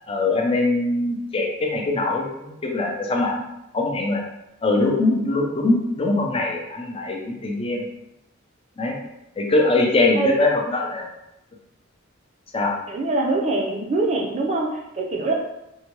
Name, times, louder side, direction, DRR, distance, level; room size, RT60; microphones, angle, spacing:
voice 1, 0.1-3.4 3.7-4.2 4.6-7.9 8.8-9.0 9.4-11.1 12.5-12.7, left 2 dB, 30° left, 0 dB, 0.4 m, -22 dB
voice 2, 12.9-14.7 14.9-15.3, right 2 dB, 35° right, -1 dB, 0.5 m, -23 dB
2.7 x 2.2 x 2.9 m, 0.88 s
head